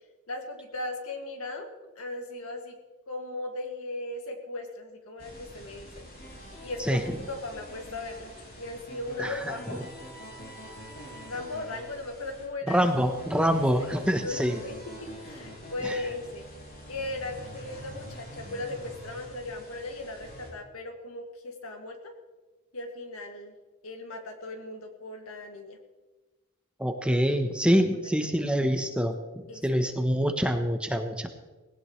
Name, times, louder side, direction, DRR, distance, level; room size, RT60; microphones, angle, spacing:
voice 1, 0.3-1.7 2.0-2.8 3.1-6.1 6.6-9.8 11.3-12.8 13.5-14.7 15.0-16.4 16.9-22.1 22.7-23.5 23.8-25.8 28.2-28.4 29.5-29.6, left 2 dB, 70° left, 3 dB, 2.2 m, -37 dB
sound 1, 5.2-20.5, equal, 45° left, 5.0 m, -45 dB
voice 2, 9.2-9.8 12.7-14.6 15.8-16.0 26.8-29.2 29.6-31.3, equal, 5° right, 6 dB, 0.9 m, -25 dB
19.0 x 17.5 x 3.2 m, 1.2 s
head